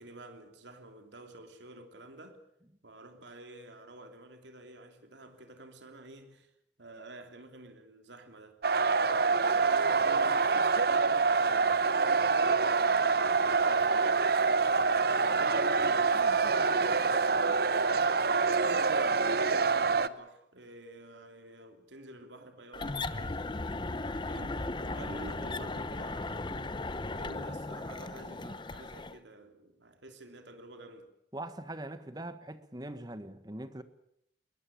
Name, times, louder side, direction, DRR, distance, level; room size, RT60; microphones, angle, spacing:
voice 1, 0.0-2.4 2.8-6.5 6.8-8.6 9.0-13.1 13.8-17.8 18.3-31.1, right 1 dB, 80° right, 3.2 m, -50 dB
sound 1, 8.6-20.1, right 4 dB, 55° right, 0.8 m, -26 dB
sound 2, 22.7-29.2, left 2 dB, 25° left, 0.8 m, -37 dB
voice 2, 31.3-33.8, right 1 dB, 20° right, 1.4 m, -42 dB
21.5 x 20.0 x 8.7 m
head